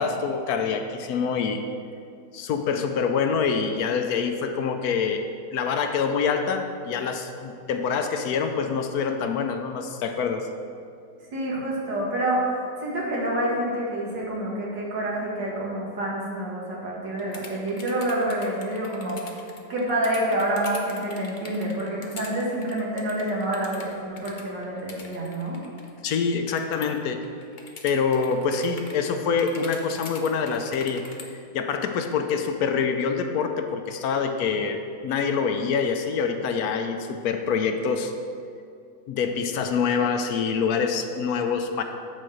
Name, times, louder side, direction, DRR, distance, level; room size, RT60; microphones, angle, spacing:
voice 1, 0.0-1.6 2.3-5.2 5.5-10.5 26.0-27.2 27.8-31.0 31.5-38.1 39.1-41.8, left 5 dB, 70° left, 6 dB, 1.0 m, -25 dB
voice 2, 11.3-19.3 19.7-25.6, right 1 dB, 85° right, -5 dB, 2.4 m, -28 dB
sound 1, 17.2-27.0 27.2-29.0 29.4-31.2, left 4 dB, 50° left, 0.6 m, -43 dB
8.4 x 4.3 x 6.3 m, 2.5 s
omnidirectional pair, 1.9 m